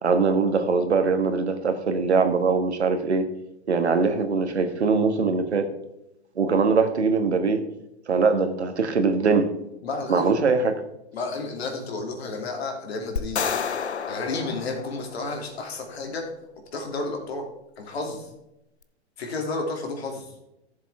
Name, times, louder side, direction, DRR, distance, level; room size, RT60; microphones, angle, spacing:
voice 1, 0.0-3.2 3.7-5.7 6.3-7.6 8.1-9.5 10.1-10.7, right 4 dB, 85° right, 7 dB, 1.5 m, -22 dB
voice 2, 9.8-10.3 11.1-13.5 14.1-17.5 17.8-18.3 19.2-20.3, left 3 dB, 70° left, 2 dB, 2.9 m, -32 dB
sound 1, 13.2-15.5, left 6 dB, 90° left, 0.9 m, -30 dB
14.0 x 7.3 x 3.6 m, 0.89 s
hypercardioid pair, 115°, 33 cm